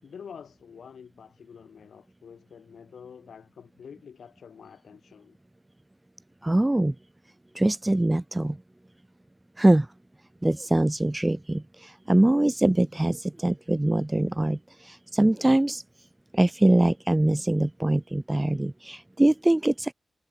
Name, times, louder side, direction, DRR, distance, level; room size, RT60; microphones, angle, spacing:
voice 1, 0.0-5.4, left 7 dB, 80° left, 7.0 m, -47 dB
voice 2, 6.4-6.9 7.6-8.6 9.6-9.9 10.4-14.6 14.8-15.8 16.3-19.9, right 1 dB, 10° right, 0.9 m, -23 dB
wide cardioid pair, 165°, 0 cm